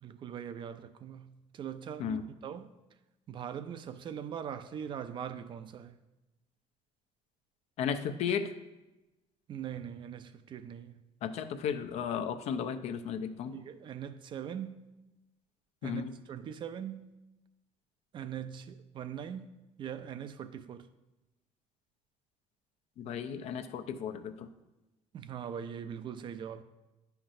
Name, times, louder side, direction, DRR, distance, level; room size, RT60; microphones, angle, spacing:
voice 1, 0.0-2.7 3.3-6.0 9.5-11.0 13.5-14.9 15.8-17.1 18.1-20.9 25.1-26.6, right 8 dB, 40° right, 0.4 m, -41 dB
voice 2, 7.8-8.5 11.2-13.5 15.8-16.1 23.0-24.5, left 7 dB, 65° left, 0.5 m, -34 dB
10.0 x 5.8 x 2.6 m
cardioid pair, 130°, 12 cm